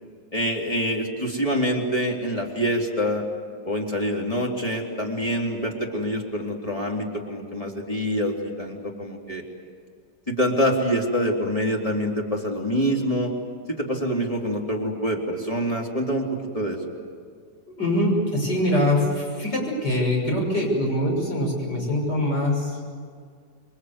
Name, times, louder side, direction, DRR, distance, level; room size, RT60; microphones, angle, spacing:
voice 1, 0.3-3.2 3.6-9.4 10.3-13.3 13.7-16.3 16.5-16.8, equal, 20° left, -1 dB, 3.5 m, -25 dB
voice 2, 17.8-22.8, left 1 dB, 80° left, -1 dB, 7.0 m, -23 dB
28.0 x 22.5 x 8.2 m, 2.1 s
omnidirectional pair, 1.9 m